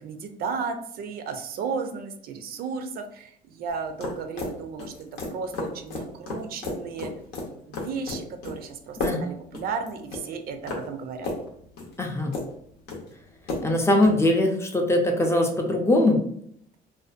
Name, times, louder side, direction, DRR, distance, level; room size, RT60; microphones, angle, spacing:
voice 1, 0.0-4.9 5.3-7.1 7.7-11.3, right 5 dB, 60° right, 6 dB, 0.4 m, -34 dB
sound 1, 3.7-14.2, left 2 dB, 85° left, 0.7 m, -34 dB
voice 2, 12.0-12.3 13.6-16.2, left 1 dB, 15° left, 2 dB, 0.4 m, -21 dB
2.5 x 2.1 x 2.4 m, 0.67 s
cardioid pair, 110°, 17 cm